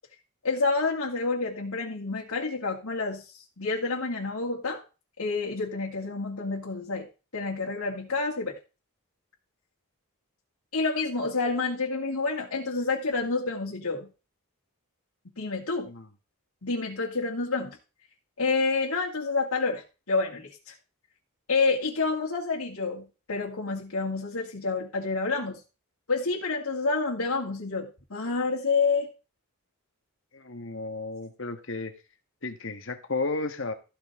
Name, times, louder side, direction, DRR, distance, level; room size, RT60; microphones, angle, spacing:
voice 1, 0.4-3.2 3.6-4.8 5.2-7.1 7.3-8.6 10.7-14.1 15.4-15.9 16.6-17.8 18.4-20.7 21.5-25.6 26.1-29.1, left 4 dB, 80° left, -3 dB, 2.5 m, -28 dB
voice 2, 30.3-31.9 32.4-33.7, left 3 dB, 55° left, 7 dB, 1.6 m, -33 dB
14.0 x 8.0 x 3.8 m, 0.32 s
head